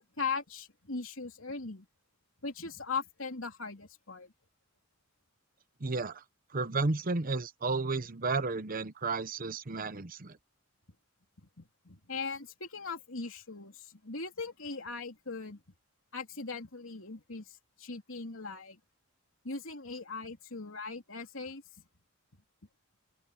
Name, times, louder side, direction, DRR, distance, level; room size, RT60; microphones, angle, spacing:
voice 1, 0.0-1.9 2.4-4.3 11.6-15.6 16.1-18.8 19.4-21.6, left 4 dB, 70° left, 3.5 m, -39 dB
voice 2, 5.8-6.2 6.5-10.4, right 3 dB, 45° right, 0.9 m, -32 dB
open air
head